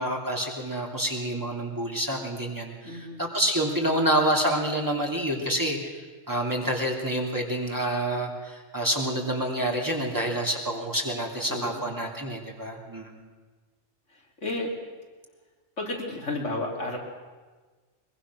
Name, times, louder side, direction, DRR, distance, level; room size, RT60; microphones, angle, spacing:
voice 1, 0.0-13.2, right 1 dB, 15° right, -1 dB, 3.1 m, -28 dB
voice 2, 2.8-3.2 11.5-12.1 14.1-14.7 15.8-17.0, left 2 dB, 80° left, -1 dB, 4.0 m, -32 dB
23.0 x 22.5 x 6.4 m, 1.4 s
omnidirectional pair, 1.2 m